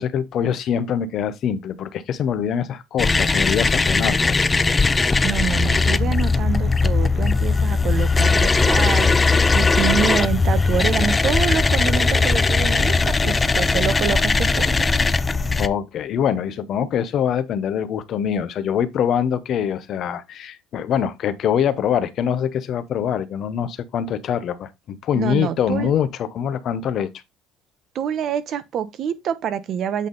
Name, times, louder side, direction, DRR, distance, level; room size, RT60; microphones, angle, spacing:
voice 1, 0.0-4.4 15.6-27.1, left 8 dB, 55° left, 0.9 m, -24 dB
sound 1, 3.0-15.7, left 4 dB, 20° left, 0.4 m, -19 dB
voice 2, 5.2-9.1 9.5-14.9 25.1-25.9 27.9-30.1, right 8 dB, 55° right, 0.9 m, -26 dB
8.4 x 3.6 x 3.9 m
cardioid pair, 115°, 0 cm